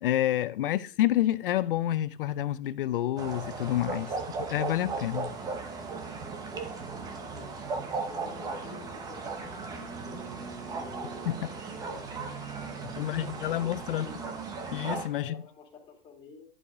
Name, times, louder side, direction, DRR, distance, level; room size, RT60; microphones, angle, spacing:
voice 1, 0.0-5.3 11.2-11.4 12.8-14.1 14.7-15.4, left 13 dB, 60° left, 0.6 m, -29 dB
voice 2, 0.6-0.9 6.7-7.5 8.0-10.3 11.0-11.4 11.9-12.2 13.0-14.2 15.1-16.5, left 5 dB, 15° left, 2.7 m, -50 dB
sound 1, 3.2-15.1, right 4 dB, 10° right, 0.8 m, -37 dB
11.0 x 4.9 x 4.9 m
supercardioid pair, 160°, 30 cm